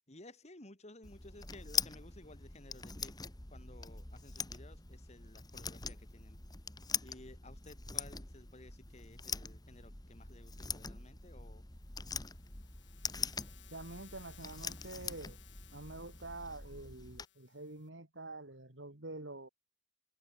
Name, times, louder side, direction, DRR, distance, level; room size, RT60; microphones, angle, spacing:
voice 1, 0.1-6.4 7.0-11.7, left 1 dB, 35° left, 3.4 m, -56 dB
sound 1, 1.0-17.2, left 5 dB, 20° left, 2.1 m, -43 dB
sound 2, 11.7-17.9, left 12 dB, 80° left, 4.4 m, -62 dB
voice 2, 13.7-15.4 15.7-19.5, right 2 dB, 85° right, 3.6 m, -47 dB
head